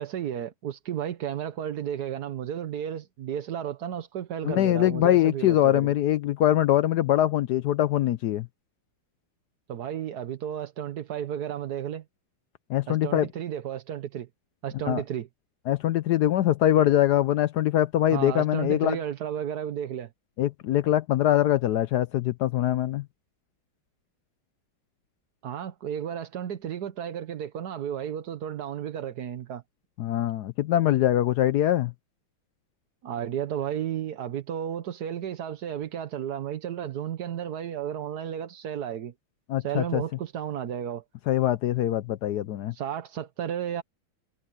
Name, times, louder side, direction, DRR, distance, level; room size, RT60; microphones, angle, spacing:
voice 1, 0.0-5.9 9.7-12.0 12.9-14.3 14.6-15.3 18.1-20.1 25.4-29.6 33.0-39.1 39.6-41.0 42.7-43.8, right 9 dB, 55° right, 1.4 m, -33 dB
voice 2, 4.4-8.5 12.7-13.3 14.9-15.0 15.7-19.0 20.4-23.0 30.0-31.9 39.5-40.0 41.3-42.7, left 12 dB, 75° left, 0.9 m, -23 dB
omnidirectional pair, 2.3 m